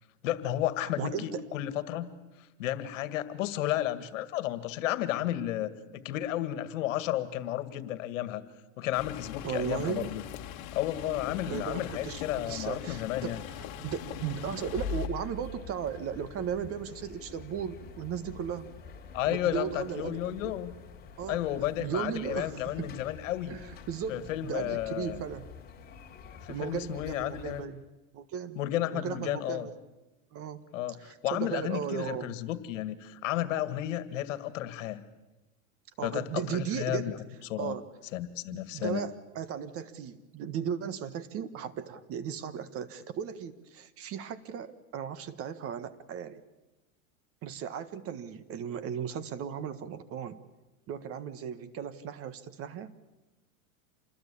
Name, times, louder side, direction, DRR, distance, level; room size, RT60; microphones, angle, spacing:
voice 1, 0.2-2.1 2.6-8.4 8.8-10.2 10.7-13.4 19.1-20.7 21.3-23.6 24.1-25.2 26.3-27.6 28.6-29.7 30.7-35.0 36.0-37.1 37.5-37.7 38.1-39.0, left 13 dB, 70° left, 12 dB, 2.0 m, -32 dB
voice 2, 0.8-1.4 9.4-10.1 11.5-18.7 19.3-20.4 21.2-21.4 21.8-22.9 23.5-25.5 26.5-27.8 28.1-28.6 28.9-29.7 30.3-30.6 31.0-32.3 36.0-37.2 37.6-37.8 38.5-46.4 47.4-50.4 50.9-52.9, right 8 dB, 35° right, 13 dB, 1.5 m, -36 dB
sound 1, 8.9-15.1, left 11 dB, 45° left, 2.3 m, -42 dB
sound 2, 10.9-27.6, left 5 dB, 25° left, 3.6 m, -45 dB
27.5 x 20.5 x 8.6 m, 1.1 s
supercardioid pair, 135°, 40 cm